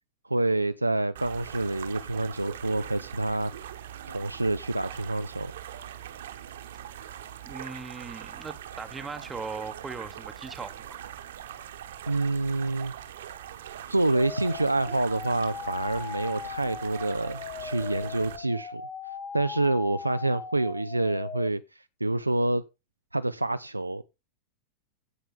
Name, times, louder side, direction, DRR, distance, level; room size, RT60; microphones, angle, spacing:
voice 1, 0.2-3.5 4.1-5.5 12.1-12.9 13.9-18.8 19.3-22.6 23.1-24.0, right 2 dB, 85° right, 0.4 m, -27 dB
sound 1, 1.2-18.4, right 10 dB, 60° right, 1.2 m, -42 dB
voice 2, 7.4-11.0, right 4 dB, 15° right, 1.0 m, -39 dB
sound 2, 14.1-21.5, left 6 dB, 35° left, 1.9 m, -39 dB
16.0 x 5.6 x 3.6 m
figure-of-eight pair, 90°, 0 cm